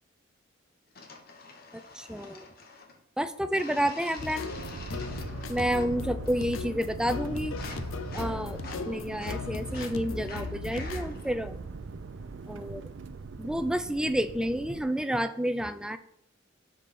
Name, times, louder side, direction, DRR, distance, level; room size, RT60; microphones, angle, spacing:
sound 1, 1.0-3.0 3.5-6.0 6.3-6.7 7.0-11.3, left 3 dB, 50° left, 1.1 m, -47 dB
voice 1, 1.7-2.5 3.2-4.5 5.5-7.6 8.1-11.6 12.5-12.8 13.4-16.0, equal, 5° right, 10 dB, 0.3 m, -30 dB
sound 2, 4.2-11.1, left 4 dB, 85° left, 0.6 m, -37 dB
sound 3, 4.5-14.8, right 4 dB, 65° right, 0.4 m, -41 dB
5.9 x 5.3 x 5.0 m, 0.74 s
head